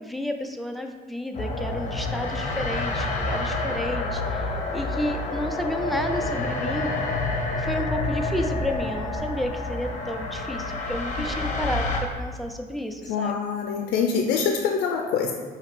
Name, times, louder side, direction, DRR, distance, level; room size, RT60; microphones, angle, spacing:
voice 1, 0.0-6.9 7.6-11.9 12.2-13.4, left 1 dB, ahead, 4 dB, 0.3 m, -31 dB
sound 1, 1.3-12.0, left 2 dB, 45° left, 0.7 m, -28 dB
voice 2, 13.1-15.3, left 6 dB, 80° left, 2 dB, 0.4 m, -25 dB
4.9 x 2.8 x 3.3 m, 1.5 s
cardioid pair, 110°, 17 cm